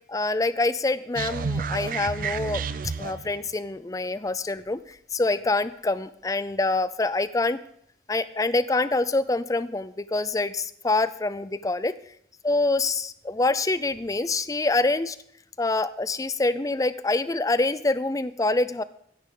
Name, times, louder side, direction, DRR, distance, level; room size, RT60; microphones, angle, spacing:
voice 1, 0.1-2.6 3.0-7.6 8.1-11.9 12.4-15.2 15.6-18.8, left 2 dB, 20° left, 15 dB, 0.4 m, -25 dB
sound 1, 1.2-3.4, right 5 dB, 50° right, 0.4 m, -30 dB
15.5 x 9.9 x 3.8 m, 0.69 s
head